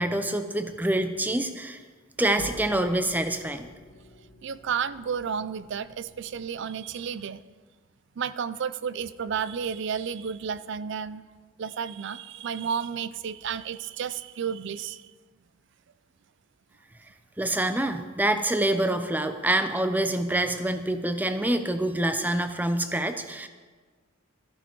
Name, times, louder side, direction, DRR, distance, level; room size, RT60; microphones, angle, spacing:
voice 1, 0.0-1.8 2.2-3.7 17.4-23.5, right 1 dB, 10° right, 9 dB, 0.6 m, -26 dB
sound 1, 2.4-7.2, left 1 dB, 85° left, 2.2 m, -47 dB
voice 2, 4.4-7.4 8.2-11.2 11.6-15.1, right 7 dB, 60° right, 16 dB, 0.4 m, -32 dB
14.0 x 11.0 x 4.6 m, 1.4 s
head